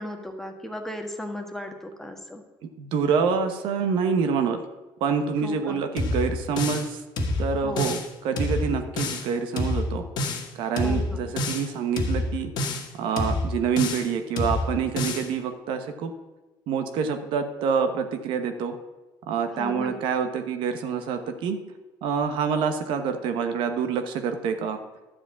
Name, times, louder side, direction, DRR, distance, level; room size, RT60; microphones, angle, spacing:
voice 1, 0.0-2.4 5.4-5.8 7.6-7.9 10.8-11.3 19.5-20.0, left 1 dB, 5° left, 3 dB, 1.4 m, -36 dB
voice 2, 2.8-4.6 5.0-7.0 7.4-10.0 10.5-12.5 12.9-16.1 16.7-18.7 19.3-21.6 22.0-24.8, right 6 dB, 75° right, 7 dB, 1.1 m, -26 dB
sound 1, 6.0-6.9 7.2-8.1 8.4-9.3 9.6-10.5 10.8-11.7 12.0-12.9 13.2-14.1 14.4-15.3, left 2 dB, 60° left, 1.7 m, -27 dB
11.5 x 5.0 x 8.3 m, 1.1 s
cardioid pair, 120°, 9 cm